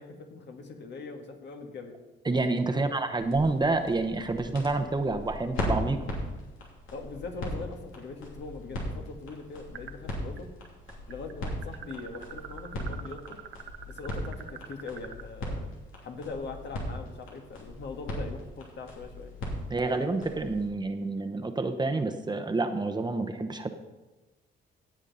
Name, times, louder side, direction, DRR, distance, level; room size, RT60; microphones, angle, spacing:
voice 1, 0.0-2.0 2.7-2.9 6.9-10.5 11.1-13.4 13.9-15.7 16.0-19.3, left 3 dB, 60° left, 3 dB, 1.8 m, -41 dB
voice 2, 2.2-6.0 19.7-23.7, right 3 dB, 20° right, 6 dB, 0.9 m, -28 dB
sound 1, 3.1-20.7, left 1 dB, 90° left, 3.0 m, -38 dB
sound 2, 9.7-10.4 10.7-15.2, right 9 dB, 85° right, 0.9 m, -44 dB
17.0 x 7.2 x 4.1 m, 1.1 s
cardioid pair, 90°, 20 cm